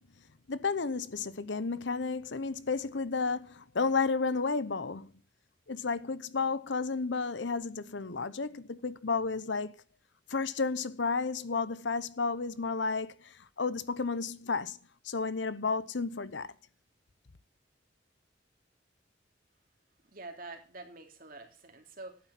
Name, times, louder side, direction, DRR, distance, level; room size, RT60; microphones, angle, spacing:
voice 1, 0.5-5.1 5.7-9.8 10.3-14.8 15.0-16.5, left 4 dB, 75° left, 0.8 m, -32 dB
voice 2, 20.0-22.2, right 3 dB, 50° right, 2.8 m, -46 dB
11.5 x 9.3 x 5.7 m
head